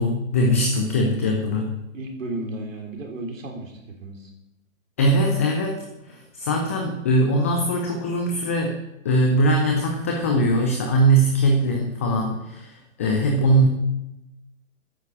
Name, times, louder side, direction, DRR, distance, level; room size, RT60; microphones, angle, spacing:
voice 1, 0.0-1.7 5.0-5.8 6.1-8.8 9.0-13.7, right 1 dB, 10° left, 2 dB, 0.4 m, -21 dB
voice 2, 1.9-3.7 4.0-4.3, right 2 dB, 65° right, 2 dB, 3.3 m, -33 dB
9.8 x 8.2 x 7.0 m, 0.91 s
figure-of-eight pair, 125°, 41 cm